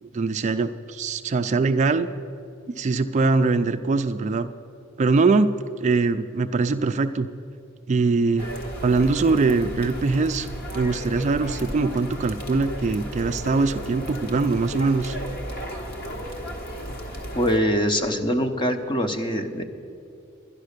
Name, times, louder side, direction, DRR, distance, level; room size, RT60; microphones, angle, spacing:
voice 1, 0.0-2.1 2.7-4.5 5.0-5.5 5.8-7.3 7.9-8.5 8.8-10.5 10.7-15.2, right 3 dB, 35° right, 8 dB, 0.3 m, -22 dB
sound 1, 8.4-17.6, equal, 50° left, 1.5 m, -34 dB
voice 2, 17.3-19.6, equal, 25° left, 6 dB, 0.8 m, -23 dB
11.5 x 10.5 x 6.6 m, 2.5 s
head